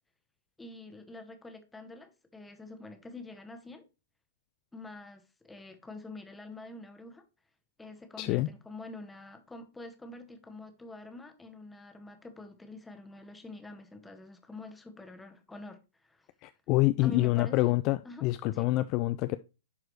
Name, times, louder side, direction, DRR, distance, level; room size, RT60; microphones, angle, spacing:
voice 1, 0.6-3.8 4.7-7.2 7.8-16.3 17.0-17.8 18.0-18.2 18.5-18.7, left 2 dB, 5° left, 1.2 m, -46 dB
voice 2, 8.2-8.5 16.4-19.4, left 18 dB, 35° left, 0.3 m, -27 dB
10.5 x 4.7 x 3.2 m
figure-of-eight pair, 110°, 0 cm